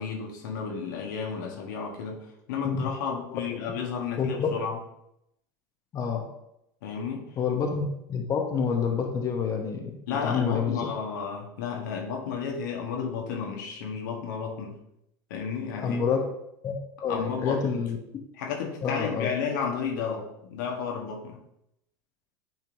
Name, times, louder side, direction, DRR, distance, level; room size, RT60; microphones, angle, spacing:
voice 1, 0.0-4.8 6.8-7.2 10.1-14.8 15.3-16.0 17.1-17.8 18.3-21.4, left 6 dB, 65° left, 1 dB, 1.2 m, -32 dB
voice 2, 4.2-4.5 5.9-6.3 7.4-10.9 15.8-16.2 16.6-18.0 18.8-19.3, left 6 dB, 35° left, 2 dB, 1.0 m, -28 dB
9.2 x 4.4 x 2.6 m, 0.81 s
hypercardioid pair, 80°, 11 cm